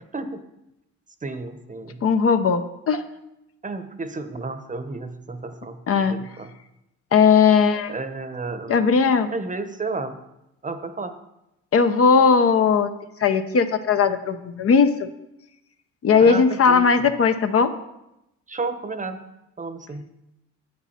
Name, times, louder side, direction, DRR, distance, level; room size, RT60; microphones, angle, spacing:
voice 1, 1.2-2.0 3.6-6.5 7.9-8.8 9.3-10.2 10.6-11.1 16.2-16.8 18.5-19.2 19.6-20.1, right 3 dB, 25° right, 9 dB, 0.8 m, -32 dB
voice 2, 2.0-3.0 5.9-6.2 7.1-7.9 8.7-9.3 11.7-12.9 13.2-15.1 16.0-17.7, left 5 dB, 50° left, 8 dB, 0.7 m, -18 dB
8.7 x 8.2 x 4.2 m, 0.87 s
cardioid pair, 90°, 30 cm